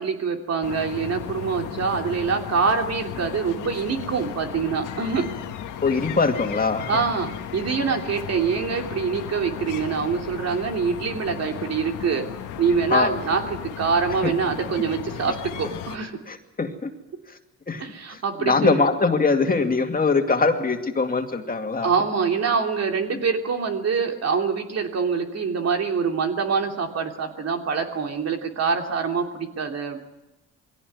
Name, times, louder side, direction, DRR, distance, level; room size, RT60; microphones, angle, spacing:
voice 1, 0.0-5.3 6.9-12.3 12.6-16.2 17.8-18.8 21.8-30.0, right 5 dB, 55° right, 3 dB, 3.2 m, -25 dB
sound 1, 0.6-16.0, left 9 dB, 90° left, 1.9 m, -35 dB
voice 2, 5.8-6.9 12.9-13.2 14.2-14.3 16.3-16.9 17.7-21.9, left 4 dB, 30° left, 4 dB, 2.4 m, -22 dB
22.5 x 17.0 x 9.6 m, 1.0 s
cardioid pair, 90°, 30 cm